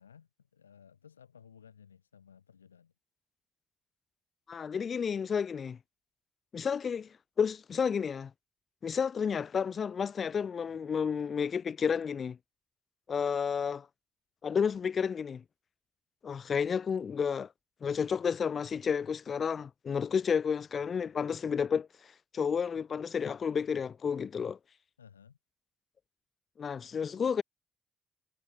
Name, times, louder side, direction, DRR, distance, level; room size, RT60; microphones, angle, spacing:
voice 1, 0.0-2.9 25.0-25.4, left 7 dB, 90° left, 6.6 m, -57 dB
voice 2, 4.5-5.8 6.5-8.3 8.8-12.4 13.1-13.9 14.4-15.4 16.2-17.5 17.8-24.6 26.6-27.4, left 6 dB, 45° left, 0.3 m, -31 dB
figure-of-eight pair, 45°, 0 cm